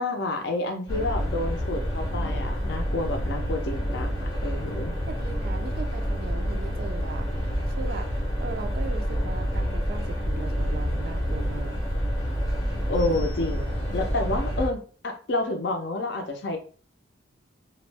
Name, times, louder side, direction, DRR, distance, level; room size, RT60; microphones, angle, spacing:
voice 1, 0.0-4.9 12.9-16.6, left 2 dB, 55° left, 5 dB, 0.5 m, -29 dB
sound 1, 0.9-14.7, equal, 20° left, 0.7 m, -28 dB
voice 2, 5.1-8.1 8.4-11.8, right 4 dB, 50° right, 6 dB, 0.3 m, -39 dB
2.4 x 2.0 x 3.3 m, 0.41 s
head